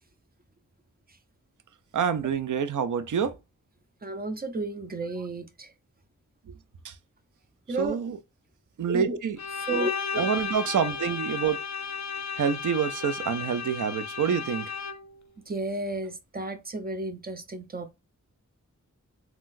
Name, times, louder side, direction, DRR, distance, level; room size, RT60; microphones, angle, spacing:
voice 1, 1.9-3.3 6.8-6.9 7.8-8.2 8.8-9.4 10.2-11.6 12.4-14.7, right 7 dB, 75° right, 0.5 m, -27 dB
voice 2, 4.0-5.7 7.7-8.0 8.9-9.2 9.6-10.3 15.5-17.9, right 2 dB, 30° right, 0.7 m, -32 dB
Bowed string instrument, 9.4-15.2, left 6 dB, 65° left, 0.5 m, -34 dB
3.7 x 2.3 x 2.5 m
wide cardioid pair, 60°, 31 cm